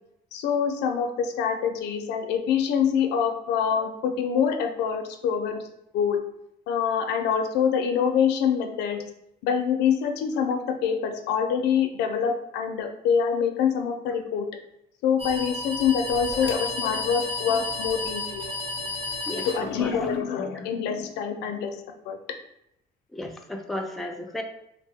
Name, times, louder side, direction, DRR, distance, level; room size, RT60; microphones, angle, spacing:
voice 1, 0.3-5.6 5.9-6.2 6.7-9.0 9.4-14.5 15.0-18.4 19.5-21.8 22.1-22.2, left 7 dB, 85° left, 6 dB, 0.4 m, -25 dB
sound 1, 15.2-20.2, left 2 dB, 30° right, 0.7 m, -32 dB
voice 2, 19.3-20.1 20.4-20.7 23.1-24.4, left 1 dB, ahead, 3 dB, 0.3 m, -34 dB
3.0 x 2.0 x 3.4 m, 0.79 s
cardioid pair, 110°, 17 cm